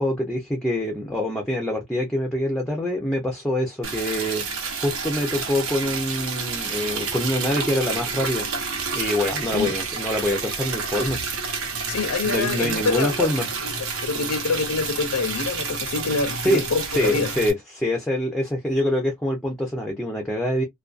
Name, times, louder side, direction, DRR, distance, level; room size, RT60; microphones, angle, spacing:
voice 1, 0.0-4.4 4.8-8.5 8.9-11.2 12.2-13.5 16.4-16.6 16.9-20.6, left 1 dB, 5° left, 0.4 m, -25 dB
Liquid, 3.8-17.5, right 5 dB, 80° right, 0.9 m, -29 dB
voice 2, 11.9-13.3 13.8-17.3, left 4 dB, 85° left, 0.6 m, -26 dB
2.4 x 2.3 x 2.4 m
head